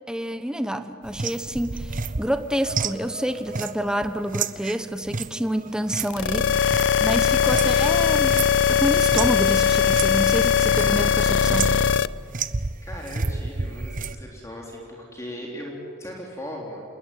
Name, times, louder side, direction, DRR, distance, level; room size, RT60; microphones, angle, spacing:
voice 1, 0.1-6.6 7.0-11.7, equal, 5° right, 9 dB, 1.0 m, -28 dB
sound 1, 1.0-7.8 8.1-9.4 9.9-10.1 10.4-11.0 11.5-12.0 12.3-14.2, right 4 dB, 45° right, 0.9 m, -31 dB
sound 2, 6.1-12.1, left 7 dB, 75° left, 0.6 m, -20 dB
voice 2, 12.8-16.8, equal, 15° left, -2 dB, 3.6 m, -38 dB
28.0 x 20.5 x 9.3 m, 2.4 s
head